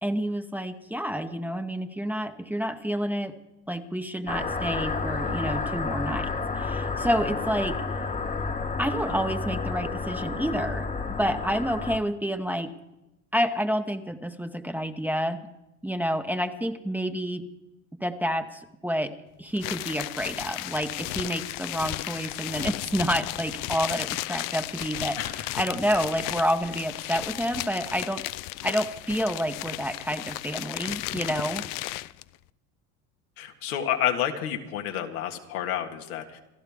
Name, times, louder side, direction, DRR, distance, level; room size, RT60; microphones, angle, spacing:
voice 1, 0.0-3.3 3.7-7.8 8.8-10.9 11.2-12.7 13.3-15.5 15.8-17.4 18.0-19.1 19.4-25.2 25.5-28.2 28.6-31.6, equal, 5° right, 8 dB, 1.0 m, -29 dB
sound 1, 4.3-12.0, left 4 dB, 20° left, 1.2 m, -30 dB
sound 2, 19.6-32.2, left 17 dB, 50° left, 0.5 m, -34 dB
voice 2, 33.4-36.4, left 10 dB, 85° left, 3 dB, 1.8 m, -29 dB
28.0 x 12.0 x 3.6 m, 0.95 s
supercardioid pair, 90°, 43 cm